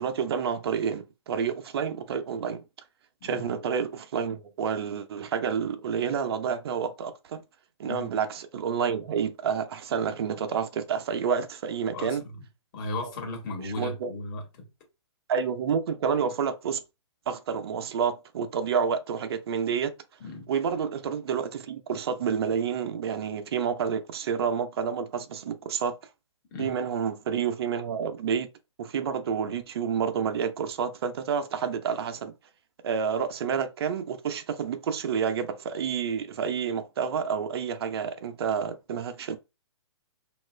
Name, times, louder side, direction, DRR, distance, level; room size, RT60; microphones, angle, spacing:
voice 1, 0.0-2.6 3.2-7.4 7.8-12.2 13.0-13.1 13.6-14.1 15.3-16.8 17.3-19.9 20.5-26.0 26.6-28.5 28.8-32.3 32.8-39.4, right 7 dB, 55° right, 0.5 m, -29 dB
voice 2, 11.9-12.3 12.7-14.7 20.2-20.5 26.5-26.8, left 2 dB, 40° left, 1.3 m, -36 dB
2.9 x 2.4 x 3.2 m
hypercardioid pair, 140°, 15 cm